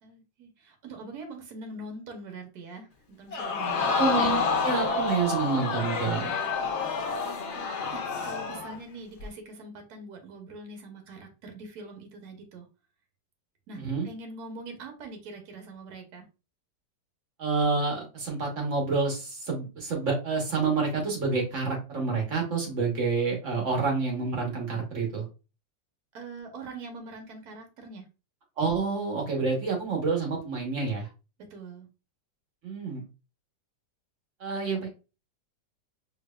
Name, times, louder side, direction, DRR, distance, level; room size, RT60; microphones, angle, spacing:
voice 1, 0.0-4.2 7.2-12.7 13.7-16.2 26.1-28.1 31.5-31.9, right 3 dB, 65° right, 4 dB, 1.3 m, -43 dB
Crowd, 3.3-8.8 9.2-9.3, left 4 dB, 65° left, 0.7 m, -28 dB
voice 2, 4.0-6.4 13.8-14.1 17.4-25.2 28.6-31.1 32.6-33.0 34.4-34.9, right 4 dB, 45° right, 0 dB, 1.3 m, -28 dB
4.5 x 2.8 x 2.2 m, 0.31 s
omnidirectional pair, 1.9 m